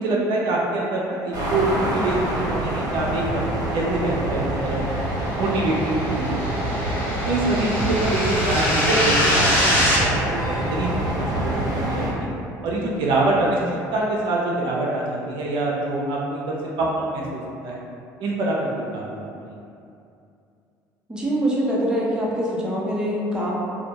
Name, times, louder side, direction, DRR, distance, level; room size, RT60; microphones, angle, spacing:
voice 1, 0.0-3.4 3.7-6.9 7.2-11.1 11.4-12.3 12.6-17.8 18.2-19.6, right 2 dB, 70° right, -3 dB, 0.4 m, -25 dB
sound 1, 1.3-12.1, right 1 dB, 50° right, 0.8 m, -26 dB
sound 2, 5.5-10.0, left 1 dB, 20° left, 1.2 m, -23 dB
Piano, 10.4-14.8, left 1 dB, 45° left, 0.6 m, -42 dB
voice 2, 21.1-23.6, equal, 10° right, -6 dB, 0.6 m, -24 dB
2.2 x 2.1 x 2.8 m, 2.5 s
supercardioid pair, 75°, 9 cm